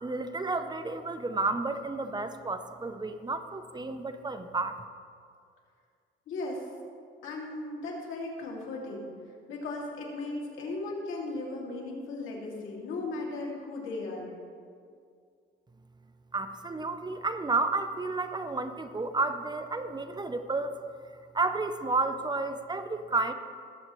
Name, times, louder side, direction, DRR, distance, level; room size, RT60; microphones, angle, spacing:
voice 1, 0.0-4.8 16.3-20.8 21.3-23.3, right 3 dB, 20° right, 9 dB, 0.6 m, -31 dB
voice 2, 6.3-6.7 7.2-9.1 9.5-14.3, left 2 dB, 80° left, -2 dB, 2.5 m, -36 dB
19.5 x 7.9 x 3.1 m, 2.2 s
cardioid pair, 90°, 20 cm